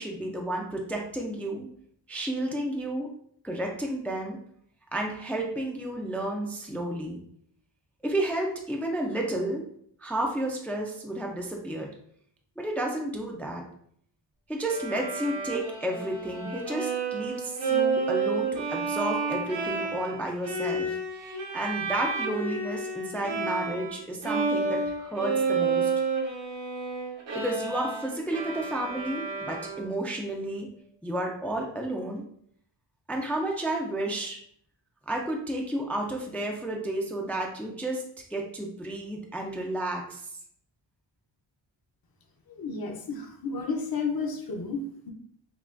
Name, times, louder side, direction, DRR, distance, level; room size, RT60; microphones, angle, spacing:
voice 1, 0.0-1.7 2.1-3.1 3.4-4.4 4.9-7.2 8.0-9.6 10.0-11.9 12.6-13.6 14.5-25.9 27.3-30.7 31.0-32.2 33.1-34.4 35.1-38.0 38.3-40.2, right 1 dB, 5° left, 1 dB, 0.3 m, -32 dB
Bowed string instrument, 14.6-24.0 24.2-30.1, right 4 dB, 75° right, 1.0 m, -30 dB
voice 2, 42.5-45.1, left 4 dB, 50° left, 2 dB, 0.7 m, -32 dB
5.6 x 2.3 x 2.5 m, 0.66 s
wide cardioid pair, 170°, 47 cm